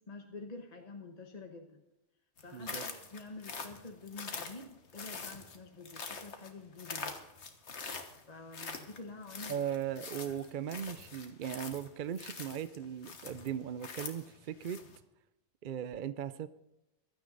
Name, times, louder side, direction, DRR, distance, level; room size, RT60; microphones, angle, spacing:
voice 1, 0.1-1.8 2.4-7.1 8.3-9.6 10.3-10.4, left 3 dB, 35° left, 3 dB, 1.2 m, -48 dB
sound 1, 2.4-15.0, left 4 dB, 75° left, 1.6 m, -44 dB
voice 2, 2.5-2.9 9.5-14.8 15.6-16.5, right 9 dB, 55° right, 14 dB, 0.6 m, -38 dB
15.5 x 12.5 x 3.9 m, 0.93 s
omnidirectional pair, 1.2 m